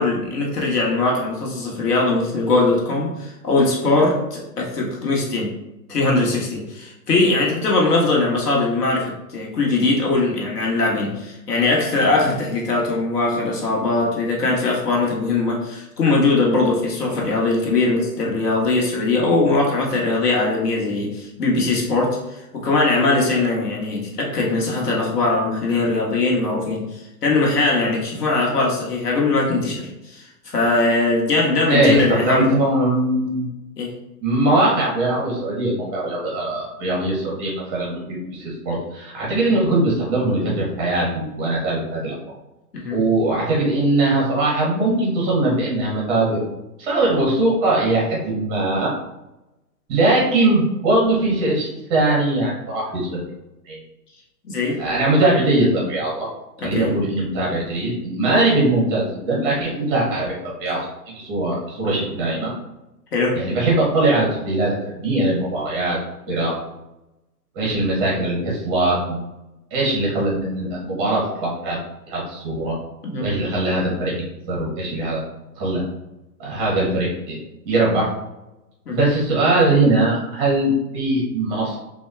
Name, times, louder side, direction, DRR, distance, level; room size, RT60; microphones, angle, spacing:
voice 1, 0.0-5.5 5.9-26.9 27.2-32.5 33.8-33.9 42.7-43.0 54.4-54.8 56.6-57.0 63.1-63.4 73.0-73.3 78.9-79.1, left 3 dB, 70° left, -2 dB, 1.5 m, -20 dB
voice 2, 31.7-33.5 34.2-38.0 38.3-42.1 42.9-46.4 46.8-48.9 49.9-53.2 53.7-53.8 54.8-56.3 56.6-60.8 61.1-62.5 63.3-66.0 66.3-66.5 67.5-69.3 69.7-71.8 72.1-72.7 73.2-75.2 75.6-75.8 76.4-77.4 77.6-78.1 78.9-81.8, right 2 dB, 10° right, -4 dB, 0.6 m, -21 dB
6.2 x 2.3 x 2.3 m, 0.94 s
hypercardioid pair, 150°, 49 cm